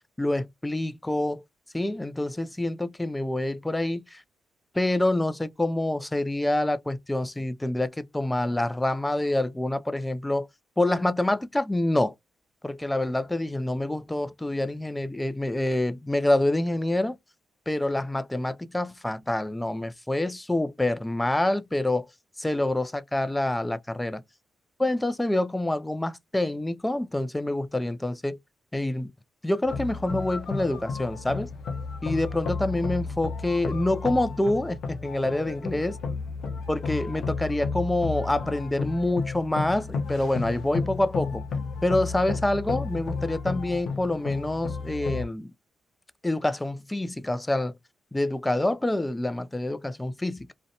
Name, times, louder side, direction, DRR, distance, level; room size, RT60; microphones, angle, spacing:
voice 1, 0.0-1.4 1.7-4.2 4.7-10.5 10.8-12.1 12.6-17.2 17.7-22.1 22.4-24.2 24.8-28.4 28.7-29.1 29.4-31.5 32.0-35.9 36.7-41.4 41.8-45.5 46.2-47.8 48.1-50.5, left 1 dB, 10° left, 0.3 m, -27 dB
sound 1, 29.6-45.3, left 4 dB, 75° left, 0.7 m, -33 dB
2.6 x 2.1 x 2.6 m
cardioid pair, 70°, 0 cm